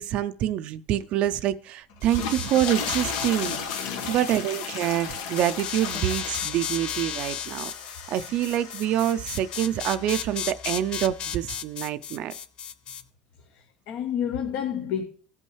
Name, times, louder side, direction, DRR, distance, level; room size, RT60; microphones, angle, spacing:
voice 1, 0.0-3.6 4.1-7.7 8.1-12.3, right 12 dB, 50° right, 0.4 m, -26 dB
sound 1, 1.9-10.2, left 6 dB, 90° left, 1.4 m, -36 dB
sound 2, 2.0-13.0, left 8 dB, 40° left, 0.5 m, -35 dB
voice 2, 3.8-4.1 13.4-15.0, left 8 dB, 65° left, 0.9 m, -30 dB
16.0 x 5.4 x 3.1 m
cardioid pair, 140°, 2 cm